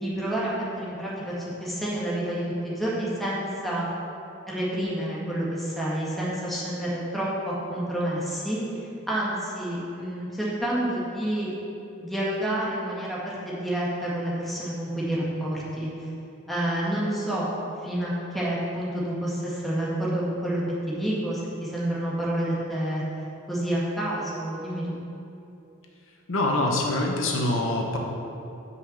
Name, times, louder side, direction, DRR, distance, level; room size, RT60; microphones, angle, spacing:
voice 1, 0.0-3.8 4.5-8.6 9.1-11.5 12.0-15.9 16.5-17.5 17.8-23.0 23.5-25.0, right 1 dB, ahead, -7 dB, 1.5 m, -29 dB
voice 2, 26.3-28.0, left 2 dB, 70° left, 0 dB, 0.9 m, -24 dB
6.0 x 5.4 x 6.9 m, 2.7 s
head